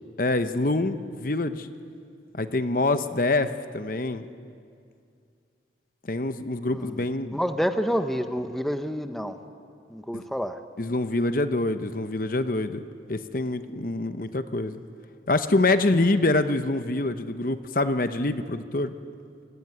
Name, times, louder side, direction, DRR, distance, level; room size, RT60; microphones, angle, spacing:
voice 1, 0.2-1.7 2.3-3.5 3.7-4.2 6.1-7.4 10.1-10.2 10.8-12.8 13.1-14.8 15.3-18.9, left 2 dB, 50° left, 10 dB, 0.9 m, -25 dB
voice 2, 6.6-7.0 7.3-9.4 9.9-10.6, equal, ahead, 7 dB, 0.9 m, -28 dB
26.0 x 21.5 x 9.5 m, 2.4 s
head